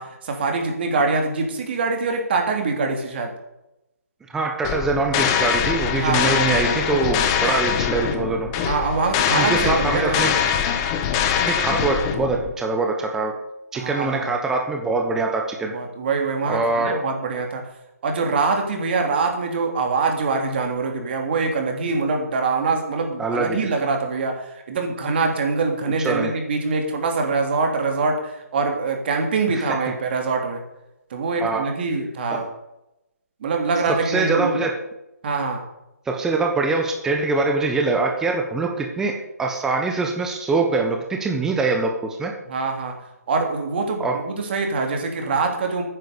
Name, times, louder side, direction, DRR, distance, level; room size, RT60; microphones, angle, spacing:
voice 1, 0.0-3.3 5.9-6.7 8.6-10.2 13.7-14.3 15.7-17.6 18.0-30.6 31.1-32.5 33.4-34.6 35.2-35.6 42.4-42.9 43.3-45.8, right 4 dB, 40° right, 3 dB, 3.1 m, -24 dB
voice 2, 4.3-8.5 9.3-10.6 11.4-13.3 13.7-15.7 16.5-17.0 23.2-23.6 26.0-26.3 29.5-29.8 31.4-31.6 34.1-34.7 36.1-39.1 39.4-42.3 44.0-44.1, right 3 dB, 5° right, 2 dB, 1.3 m, -23 dB
sound 1, 4.6-12.5, left 8 dB, 20° left, 1.2 m, -23 dB
10.5 x 9.8 x 6.9 m, 0.90 s
figure-of-eight pair, 155°, 9 cm